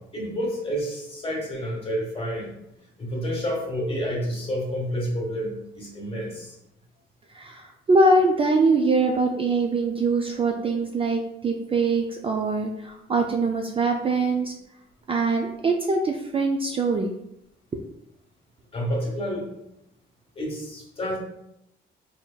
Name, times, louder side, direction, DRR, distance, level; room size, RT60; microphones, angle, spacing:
voice 1, 0.1-2.6 3.0-6.6 18.7-19.5 20.3-21.2, equal, 30° left, -1 dB, 1.3 m, -29 dB
voice 2, 7.4-14.5 15.1-17.1, right 3 dB, 30° right, 2 dB, 0.3 m, -23 dB
3.8 x 3.4 x 2.2 m, 0.83 s
cardioid pair, 90°, 20 cm